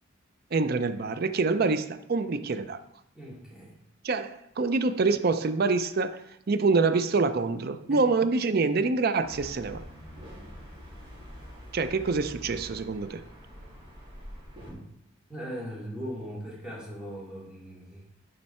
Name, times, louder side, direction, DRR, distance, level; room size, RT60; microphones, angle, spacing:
voice 1, 0.5-2.8 4.0-9.8 11.7-13.2, right 4 dB, 50° right, 0.5 m, -26 dB
voice 2, 3.1-3.8 7.8-8.0 14.6-14.8 15.3-18.0, equal, 5° right, 2.4 m, -39 dB
sound 1, 9.2-14.7, equal, 25° right, 2.8 m, -45 dB
10.5 x 4.5 x 4.3 m
head